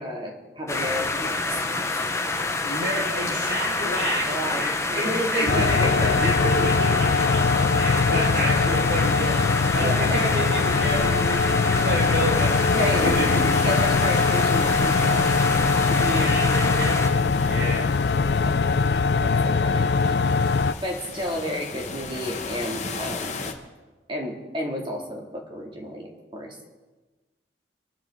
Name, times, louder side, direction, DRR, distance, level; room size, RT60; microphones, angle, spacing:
voice 1, 0.0-1.9 4.2-6.7 8.1-8.5 9.8-10.3 12.7-15.3 15.9-16.4 18.4-18.5 19.2-20.2 20.8-23.4 24.1-26.6, equal, 30° right, 0 dB, 2.4 m, -31 dB
sound 1, 0.7-17.1, left 3 dB, 15° left, 1.0 m, -28 dB
voice 2, 2.3-7.4 7.7-13.7 16.0-17.9, right 1 dB, 70° right, -2 dB, 4.9 m, -30 dB
sound 2, 5.5-20.7, left 4 dB, 65° left, 0.4 m, -22 dB
sound 3, 9.2-23.5, left 4 dB, 40° left, 1.3 m, -36 dB
24.5 x 12.0 x 3.8 m, 1.2 s
head